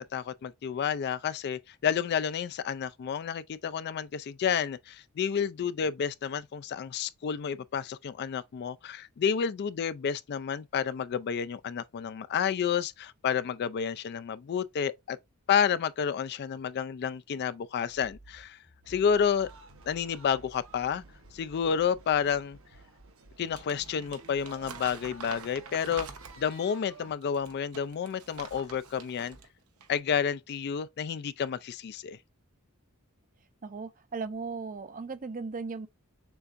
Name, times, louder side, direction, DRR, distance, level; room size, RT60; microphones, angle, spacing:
voice 1, 0.1-15.2 15.5-18.6 18.9-19.5 19.9-21.0 21.3-22.6 23.4-26.1 26.4-29.4 29.9-32.2, left 7 dB, 50° left, 0.3 m, -30 dB
Accelerating revving vroom, 17.9-25.2, right 2 dB, 85° left, 1.7 m, -56 dB
sound 1, 18.8-27.1, right 3 dB, 65° right, 1.1 m, -54 dB
Crumpling crinkling, 23.4-26.6 27.2-29.5 29.8-30.0, right 5 dB, 90° right, 0.9 m, -46 dB
voice 2, 33.6-35.9, right 4 dB, 40° right, 0.6 m, -37 dB
6.9 x 2.5 x 2.5 m
head